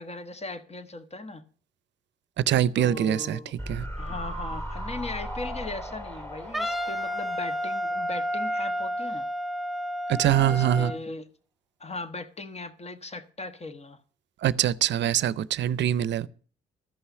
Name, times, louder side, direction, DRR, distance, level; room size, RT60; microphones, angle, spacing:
voice 1, 0.0-1.4 2.7-3.5 4.0-9.3 10.4-11.3 11.8-14.0, left 2 dB, 35° left, 1.4 m, -38 dB
voice 2, 2.5-3.4 3.7-3.8 10.1-10.9 14.4-16.3, right 11 dB, 70° right, 0.6 m, -24 dB
sound 1, 3.6-8.8 9.1-9.2, equal, 15° left, 3.1 m, -37 dB
Wind instrument woodwind instrument, 6.5-11.0, equal, ahead, 0.6 m, -30 dB
13.5 x 5.6 x 8.1 m
supercardioid pair, 65°, 19 cm